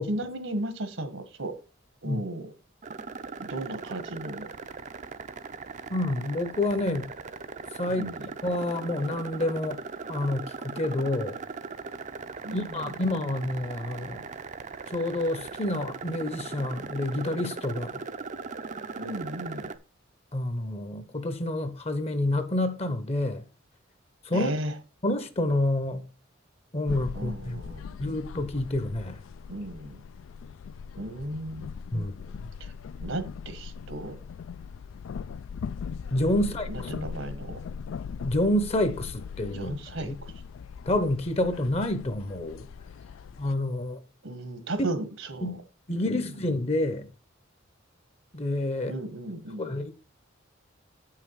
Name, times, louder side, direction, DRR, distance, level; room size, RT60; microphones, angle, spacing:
voice 1, 0.1-1.6 2.0-2.5 3.4-4.5 7.9-8.3 12.4-12.9 13.2-13.3 19.0-19.7 24.3-24.7 27.1-28.0 29.5-30.0 31.0-32.1 32.6-32.7 33.0-34.2 36.4-37.6 39.5-40.3 44.2-45.6 45.9-46.0 48.9-49.7, right 1 dB, 80° right, 1.5 m, -35 dB
sound 1, 2.8-19.8, right 4 dB, 40° right, 0.5 m, -39 dB
voice 2, 5.9-7.1 7.8-8.1 8.4-9.8 10.1-11.4 12.5-14.2 14.9-18.0 20.3-23.4 24.2-24.5 25.0-26.0 26.7-27.6 28.0-29.2 31.9-32.1 36.1-36.9 38.2-40.1 40.9-42.7 43.4-44.0 44.8-44.9 45.4-45.6 45.9-47.1 48.3-49.0 49.6-49.9, left 1 dB, 30° left, 0.8 m, -28 dB
sound 2, 26.9-43.5, left 6 dB, 80° left, 0.3 m, -40 dB
8.1 x 5.7 x 4.7 m
head